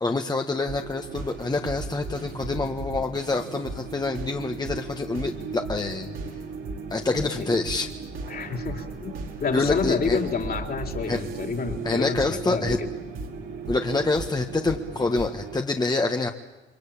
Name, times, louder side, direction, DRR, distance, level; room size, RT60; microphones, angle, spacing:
voice 1, 0.0-6.1 6.9-7.9 9.5-10.2 11.1-11.2 11.8-12.8 13.7-16.3, left 3 dB, 20° left, 4 dB, 1.6 m, -26 dB
sound 1, 0.7-15.6, right 4 dB, 85° right, 4.8 m, -36 dB
voice 2, 8.3-9.1 9.4-12.9, left 5 dB, 50° left, 4 dB, 3.8 m, -29 dB
28.5 x 23.0 x 8.9 m, 1.2 s
cardioid pair, 90°, 20 cm